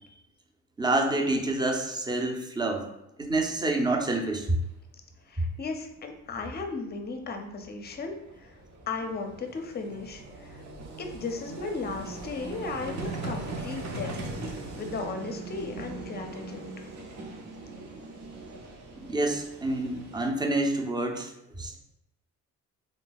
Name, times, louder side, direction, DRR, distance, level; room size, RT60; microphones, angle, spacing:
voice 1, 0.8-2.9 3.2-4.4 19.1-21.3 21.6-21.8, right 2 dB, 15° right, 3 dB, 0.5 m, -27 dB
Vehicle, 4.5-4.6 6.6-6.7 6.9-20.3, right 3 dB, 65° right, 0.7 m, -40 dB
voice 2, 5.3-8.6 8.9-10.6 11.0-14.2 14.5-16.9, left 4 dB, 35° left, 4 dB, 0.5 m, -36 dB
2.8 x 2.2 x 3.9 m, 0.85 s
cardioid pair, 90°, 30 cm